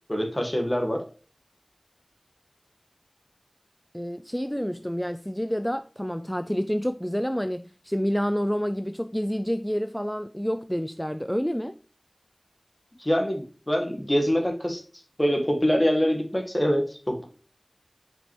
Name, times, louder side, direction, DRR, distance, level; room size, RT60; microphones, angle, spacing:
voice 1, 0.1-1.0 13.0-14.8 15.2-17.3, equal, 30° left, 1.5 m, -24 dB
voice 2, 3.9-11.8, equal, 5° left, 0.3 m, -28 dB
7.5 x 5.1 x 3.1 m
wide cardioid pair, 40°, 0 cm